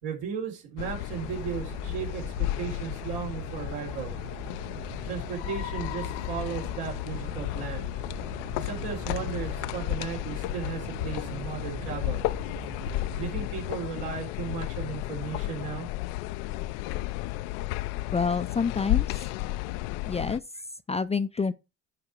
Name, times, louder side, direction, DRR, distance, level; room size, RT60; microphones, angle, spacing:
voice 1, 0.0-4.1 5.1-7.9 8.6-12.2 13.2-15.9, right 8 dB, 75° right, 3.9 m, -36 dB
sound 1, 0.8-20.4, left 17 dB, 80° left, 0.5 m, -33 dB
sound 2, 1.1-13.3, right 7 dB, 60° right, 3.5 m, -43 dB
voice 2, 18.1-19.2 20.0-21.5, left 5 dB, 15° left, 0.4 m, -28 dB
9.8 x 4.9 x 4.5 m
supercardioid pair, 80°, 38 cm